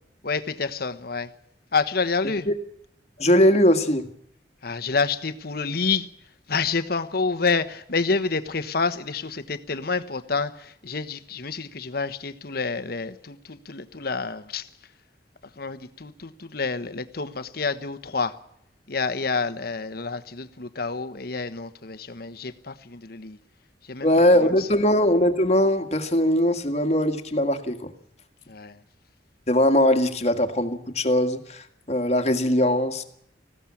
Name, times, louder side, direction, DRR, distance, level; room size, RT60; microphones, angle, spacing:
voice 1, 0.2-1.3 1.7-2.5 4.6-6.1 6.5-14.7 15.6-18.4 18.9-23.4 23.8-24.1 24.4-24.7 28.5-28.8, left 4 dB, 55° left, 1.2 m, -28 dB
voice 2, 3.2-4.0 24.0-27.9 29.5-33.0, left 1 dB, 35° left, 1.8 m, -21 dB
19.5 x 15.5 x 8.5 m
head